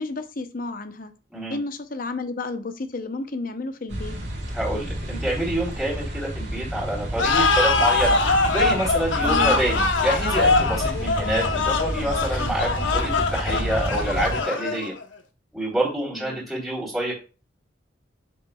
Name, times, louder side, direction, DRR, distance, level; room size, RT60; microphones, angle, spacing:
voice 1, 0.0-1.1 1.5-4.2 9.2-9.6 16.1-16.5, left 3 dB, 45° left, 9 dB, 0.7 m, -32 dB
sound 1, 3.9-14.4, equal, 65° right, 1.8 m, -30 dB
voice 2, 4.5-8.2 8.5-14.9 15.5-17.1, right 1 dB, ahead, -6 dB, 3.5 m, -27 dB
sound 2, 7.2-15.0, left 3 dB, 85° left, 0.9 m, -23 dB
7.2 x 7.0 x 2.3 m, 0.34 s
head